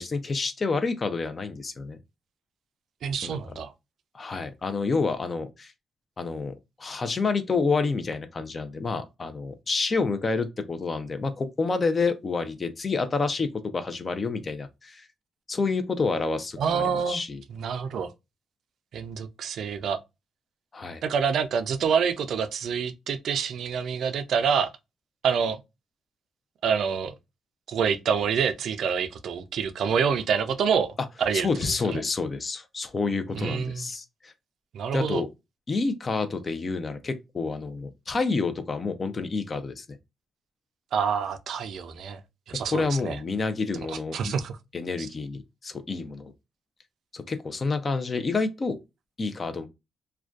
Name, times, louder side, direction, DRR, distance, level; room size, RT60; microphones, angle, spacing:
voice 1, 0.0-2.0 3.2-3.4 4.1-5.7 6.2-6.5 6.8-15.1 15.5-17.4 20.7-21.0 31.3-34.3 34.9-35.3 35.7-40.0 42.7-44.3 44.7-46.3 47.1-48.8 49.2-49.7, left 4 dB, 40° left, 0.4 m, -28 dB
voice 2, 3.0-3.7 16.6-17.2 17.5-18.1 18.9-20.0 21.0-24.7 25.2-25.6 26.6-27.1 27.7-31.5 31.9-32.0 33.3-33.9 34.7-35.2 40.9-42.2 42.5-43.2 43.9-44.6 45.0-45.1, right 6 dB, 75° right, 0.3 m, -27 dB
2.5 x 2.2 x 2.3 m
cardioid pair, 75°, 0 cm